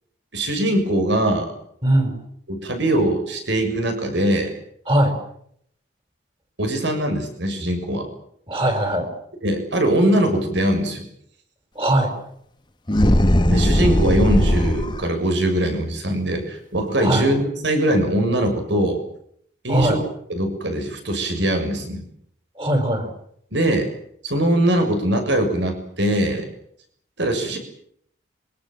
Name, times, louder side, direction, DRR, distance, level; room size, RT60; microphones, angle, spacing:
voice 1, 0.3-1.5 2.5-4.5 6.6-8.1 9.4-11.0 13.5-19.0 19.6-20.0 20.3-22.0 23.5-23.9 24.2-26.5 27.2-27.6, right 1 dB, 70° right, 6 dB, 6.8 m, -21 dB
voice 2, 1.8-2.2 4.9-5.1 8.5-9.1 11.8-12.1 17.0-17.3 19.7-20.0 22.6-23.1, right 1 dB, 25° right, 6 dB, 6.3 m, -20 dB
sound 1, 12.9-15.1, left 1 dB, 25° left, 1.3 m, -18 dB
26.0 x 25.0 x 7.8 m, 0.69 s
head